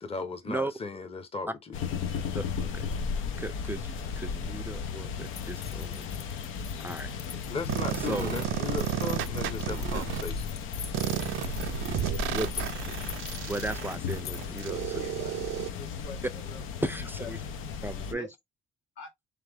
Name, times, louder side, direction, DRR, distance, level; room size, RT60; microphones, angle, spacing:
voice 1, 0.0-1.8 7.5-10.5, left 4 dB, 30° left, 0.9 m, -36 dB
sound 1, 1.7-18.1, left 6 dB, 90° left, 0.7 m, -35 dB
voice 2, 2.3-2.9 3.4-6.1 6.8-7.1 8.0-8.3 12.3-12.5 12.8-12.9 13.3-15.0 16.8-17.4 17.8-18.3, right 2 dB, 10° right, 0.5 m, -36 dB
sound 2, 5.3-14.8, left 9 dB, 55° left, 0.6 m, -46 dB
sound 3, 7.7-10.2 10.9-15.7, right 13 dB, 80° right, 0.4 m, -33 dB
voice 3, 14.7-15.3 15.7-16.6 17.2-17.3 18.1-18.3 19.0-19.1, left 3 dB, 70° left, 2.0 m, -45 dB
3.5 x 3.3 x 3.4 m
cardioid pair, 90°, 20 cm